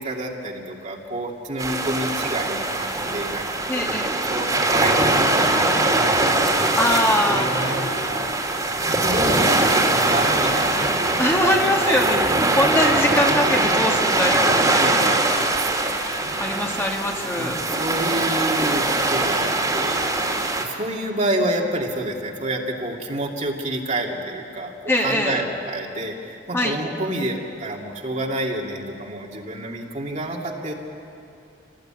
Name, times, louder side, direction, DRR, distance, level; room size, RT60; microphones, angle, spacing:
voice 1, 0.0-8.3 8.7-12.1 12.8-13.2 14.8-16.0 17.4-20.1 20.6-30.7, right 1 dB, 40° right, 0 dB, 2.6 m, -29 dB
sound 1, 1.6-20.7, right 2 dB, 20° right, 2.7 m, -22 dB
voice 2, 3.7-4.1 6.8-7.5 11.2-12.2 12.5-15.5 16.4-17.6 24.9-25.4 26.5-26.8, left 1 dB, 15° left, 0 dB, 2.3 m, -23 dB
28.0 x 19.0 x 9.1 m, 2.7 s
head